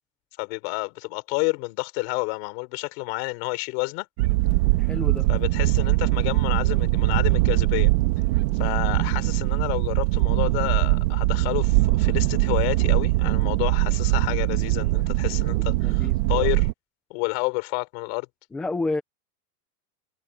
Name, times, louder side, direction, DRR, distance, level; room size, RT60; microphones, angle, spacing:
voice 1, 0.4-4.1 5.3-7.9 8.6-16.7 17.1-18.3, left 31 dB, 40° left, 5.3 m, -29 dB
sound 1, 4.2-16.7, right 19 dB, 45° right, 1.7 m, -22 dB
voice 2, 4.8-5.3 15.8-16.5 18.5-19.0, left 2 dB, 5° left, 0.4 m, -30 dB
supercardioid pair, 180°, 46 cm